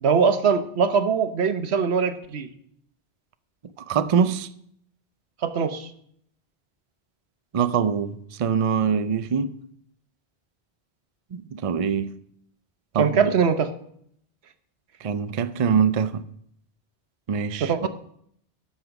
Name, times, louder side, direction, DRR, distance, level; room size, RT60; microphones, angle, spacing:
voice 1, 0.0-2.5 5.4-5.9 13.0-13.7 17.6-17.9, right 6 dB, 85° right, 1.1 m, -22 dB
voice 2, 3.9-4.5 7.5-9.5 11.3-12.1 12.9-13.3 15.0-16.2 17.3-17.9, right 7 dB, 45° right, 0.5 m, -24 dB
13.0 x 5.7 x 5.8 m
omnidirectional pair, 1.1 m